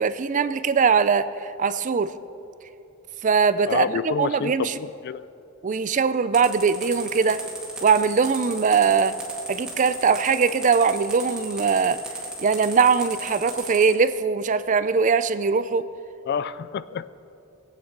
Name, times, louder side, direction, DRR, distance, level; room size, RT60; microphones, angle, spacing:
voice 1, 0.0-2.1 3.2-3.9 4.2-4.7 5.6-7.4 7.8-9.1 9.5-12.0 12.4-15.8, right 5 dB, 35° right, 13 dB, 0.4 m, -21 dB
voice 2, 3.7-5.3 16.3-17.1, left 6 dB, 50° left, 16 dB, 0.3 m, -28 dB
sound 1, 6.3-13.9, right 2 dB, 5° right, 2.1 m, -36 dB
20.0 x 8.5 x 4.6 m, 2.9 s
head